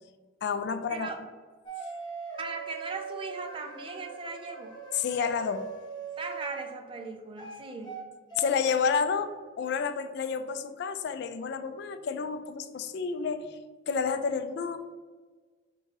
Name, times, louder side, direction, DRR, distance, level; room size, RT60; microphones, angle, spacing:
voice 1, 0.4-1.1 4.9-5.7 8.4-13.6 13.9-14.8, left 6 dB, 60° left, 10 dB, 0.3 m, -30 dB
sound 1, 1.7-6.8 7.4-8.0 8.3-8.5, right 5 dB, 25° left, 0.8 m, -41 dB
voice 2, 2.4-4.8 6.2-8.0, right 3 dB, 25° right, 4 dB, 0.5 m, -38 dB
3.8 x 2.7 x 4.6 m, 1.4 s
head